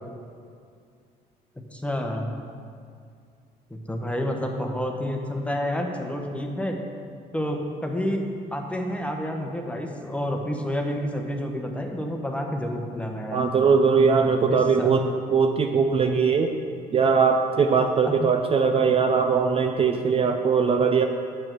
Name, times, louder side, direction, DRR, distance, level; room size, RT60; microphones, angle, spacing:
voice 1, 1.7-2.3 3.7-6.8 7.3-13.4 14.4-14.9 18.0-18.3, equal, 5° left, 2 dB, 1.1 m, -29 dB
voice 2, 13.3-15.0 15.3-16.5 16.9-21.0, right 5 dB, 35° right, 4 dB, 0.5 m, -20 dB
8.9 x 7.6 x 4.6 m, 2.3 s
cardioid pair, 110°, 17 cm